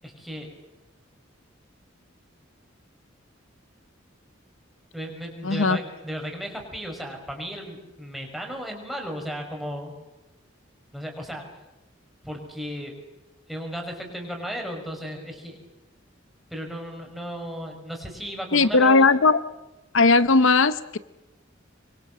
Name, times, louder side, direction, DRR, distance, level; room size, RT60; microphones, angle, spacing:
voice 1, 0.0-0.6 4.9-9.9 10.9-11.4 12.2-12.9 13.5-15.6 16.5-19.1, equal, ahead, 1 dB, 5.8 m, -35 dB
voice 2, 5.4-5.8 18.5-19.4 19.9-21.0, left 3 dB, 80° left, 14 dB, 0.9 m, -18 dB
26.0 x 23.5 x 7.7 m, 1.0 s
head